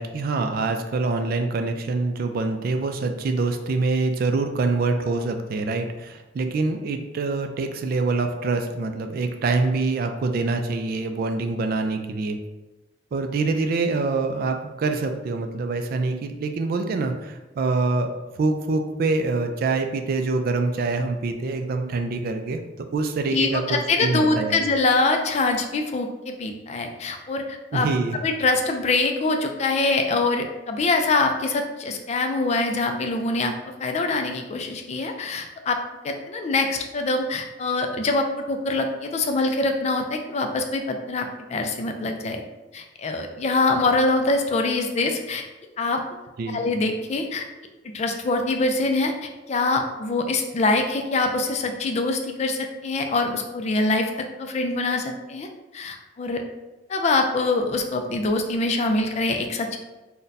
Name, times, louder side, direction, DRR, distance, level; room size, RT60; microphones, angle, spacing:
voice 1, 0.0-12.4 13.1-22.6 22.9-24.6 27.7-28.2 46.4-46.6, right 3 dB, 55° right, 6 dB, 0.3 m, -25 dB
voice 2, 23.3-27.9 28.2-42.4 42.7-45.4 45.8-46.0 46.5-47.4 47.8-49.1 49.5-55.5 55.7-56.4 56.9-59.8, left 3 dB, 35° left, 5 dB, 0.3 m, -24 dB
2.6 x 2.2 x 3.9 m, 1.1 s
head